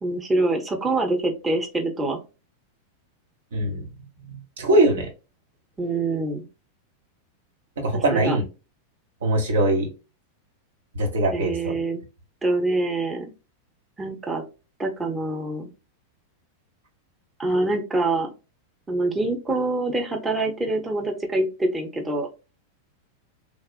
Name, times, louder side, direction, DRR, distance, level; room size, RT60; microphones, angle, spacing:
voice 1, 0.0-2.2 5.8-6.5 7.9-8.4 11.3-12.0 12.4-13.3 14.0-14.4 14.8-15.7 17.4-18.3 18.9-22.3, right 2 dB, 15° right, 2 dB, 0.8 m, -25 dB
voice 2, 3.5-3.8 4.2-5.1 7.8-8.4 9.2-9.9 11.0-11.8, right 1 dB, 65° right, 2 dB, 1.1 m, -22 dB
3.5 x 2.3 x 2.3 m, 0.30 s
figure-of-eight pair, 90°, 0 cm